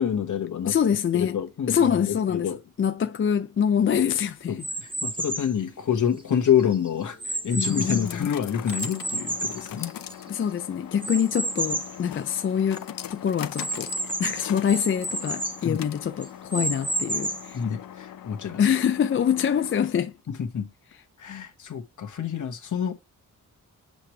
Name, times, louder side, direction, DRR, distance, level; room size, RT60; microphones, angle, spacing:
voice 1, 0.0-0.7 1.1-2.6 4.5-9.9 15.6-15.8 17.5-18.7 20.3-20.7 21.2-22.9, left 8 dB, 65° left, 1.4 m, -27 dB
voice 2, 0.7-1.4 1.7-4.6 7.5-8.2 10.3-13.9 14.2-17.7 18.6-20.1, left 8 dB, 40° left, 0.4 m, -25 dB
sound 1, 4.6-5.6 6.2-8.2 8.7-10.4 11.0-12.0 12.4-12.5 12.8-12.9 13.5-15.6 16.2-17.6, right 1 dB, 15° right, 1.2 m, -31 dB
sound 2, 6.2-20.2, left 10 dB, 85° left, 0.7 m, -41 dB
7.9 x 3.2 x 4.5 m
wide cardioid pair, 170°, 33 cm